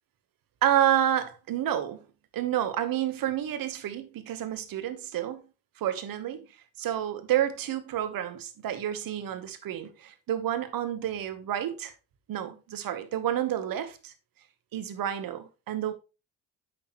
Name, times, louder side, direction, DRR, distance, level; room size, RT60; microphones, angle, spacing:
voice 1, 0.6-2.1 2.3-5.4 5.8-6.5 6.8-11.9 12.3-14.1 14.7-15.9, right 11 dB, 65° right, 1.3 m, -29 dB
8.4 x 6.2 x 3.1 m
supercardioid pair, 65°, 37 cm